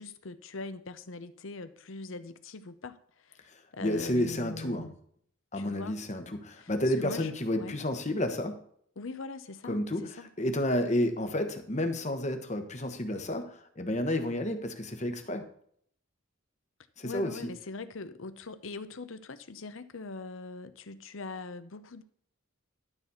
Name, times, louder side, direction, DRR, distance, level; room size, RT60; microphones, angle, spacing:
voice 1, 0.0-3.5 3.7-4.9 5.5-6.0 6.5-7.8 9.0-10.1 17.0-22.0, left 3 dB, 65° left, 12 dB, 0.8 m, -42 dB
voice 2, 3.5-4.9 5.5-8.5 9.6-15.4 17.0-17.4, left 1 dB, 35° left, 7 dB, 1.1 m, -31 dB
12.5 x 4.1 x 7.0 m, 0.64 s
head